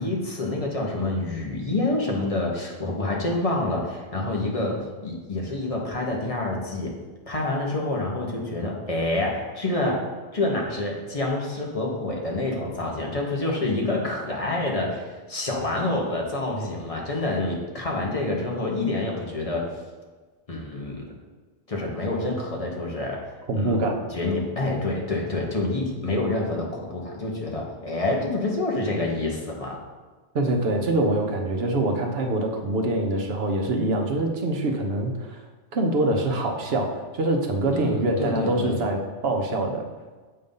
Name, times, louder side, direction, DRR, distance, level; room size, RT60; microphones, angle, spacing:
voice 1, 0.0-4.8 5.0-7.0 7.3-10.1 10.3-19.7 20.5-21.1 21.7-23.2 23.6-23.8 24.1-29.8 37.7-38.8, left 2 dB, 35° left, -1 dB, 1.1 m, -27 dB
voice 2, 23.5-24.0 30.3-35.4 35.7-39.9, right 2 dB, 65° right, 3 dB, 1.0 m, -24 dB
7.7 x 2.6 x 5.3 m, 1.3 s
omnidirectional pair, 1.2 m